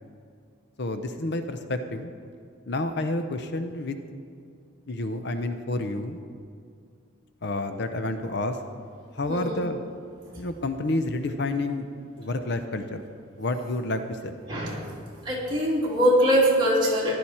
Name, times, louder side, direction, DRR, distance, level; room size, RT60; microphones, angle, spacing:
voice 1, 0.8-2.1 2.7-4.0 4.9-6.2 7.4-8.6 9.1-9.8 10.4-11.9 12.2-13.0 13.4-14.3, left 2 dB, 55° left, 8 dB, 0.6 m, -29 dB
voice 2, 9.3-9.6 14.5-14.8 15.2-17.2, equal, 20° right, -6 dB, 3.0 m, -22 dB
15.0 x 11.5 x 4.3 m, 2.3 s
head